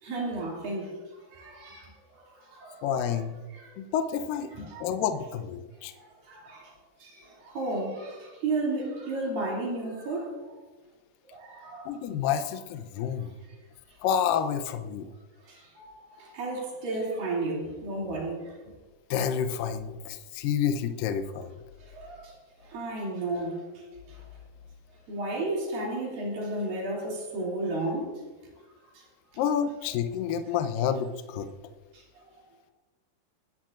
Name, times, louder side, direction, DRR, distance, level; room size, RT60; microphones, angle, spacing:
voice 1, 0.0-0.9 1.3-3.2 3.5-3.8 4.5-4.8 6.0-6.8 7.0-10.5 11.3-12.0 15.4-18.6 21.8-23.7 24.1-24.2 25.1-28.2 28.9-29.1 31.9-32.2, right 2 dB, 60° right, 4.3 m, -33 dB
voice 2, 2.8-3.4 3.8-4.5 4.8-5.9 11.9-13.3 14.0-15.1 19.1-21.5 29.4-31.5, left 8 dB, 75° left, 2.1 m, -29 dB
27.5 x 10.0 x 2.5 m
omnidirectional pair, 4.7 m